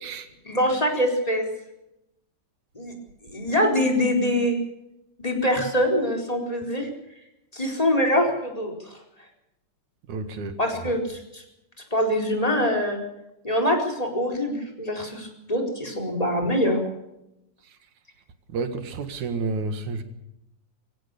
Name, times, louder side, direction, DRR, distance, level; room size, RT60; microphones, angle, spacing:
voice 1, 0.5-1.4 2.8-2.9 3.3-4.6 5.2-6.9 7.5-9.0 10.6-11.4 11.9-13.0 13.4-16.8, equal, 10° left, 4.4 m, -24 dB
voice 2, 10.1-10.9 17.6-17.8 18.5-20.0, right 3 dB, 85° right, 3.3 m, -31 dB
23.5 x 16.5 x 6.8 m
omnidirectional pair, 3.3 m